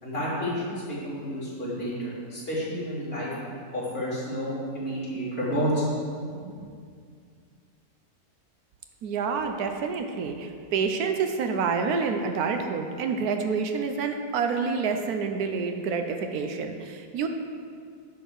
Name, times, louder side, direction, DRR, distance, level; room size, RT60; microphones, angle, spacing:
voice 1, 0.0-3.3 3.7-5.8 6.4-6.5, equal, 40° left, -7 dB, 2.9 m, -30 dB
voice 2, 9.0-17.3, right 5 dB, 75° right, 5 dB, 1.2 m, -28 dB
10.0 x 4.5 x 6.5 m, 2.2 s
omnidirectional pair, 1.6 m